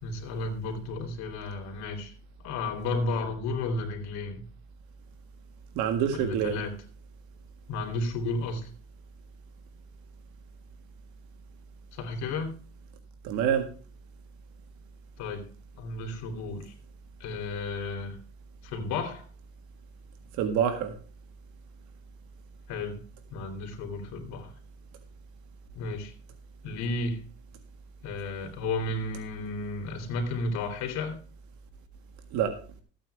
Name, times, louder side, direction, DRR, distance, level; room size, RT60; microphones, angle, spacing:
voice 1, 0.0-2.1 2.4-4.4 6.1-6.7 7.7-8.7 11.9-12.5 15.2-15.5 15.7-16.7 17.2-18.2 18.6-19.2 22.7-23.0 23.3-24.5 25.7-26.1 26.6-27.2 28.0-31.2, left 3 dB, 65° left, 4 dB, 3.1 m, -33 dB
voice 2, 5.8-6.6 13.2-13.7 20.4-20.9 32.3-32.5, right 8 dB, 70° right, 6 dB, 1.7 m, -26 dB
13.5 x 8.8 x 3.4 m, 0.38 s
cardioid pair, 125°, 29 cm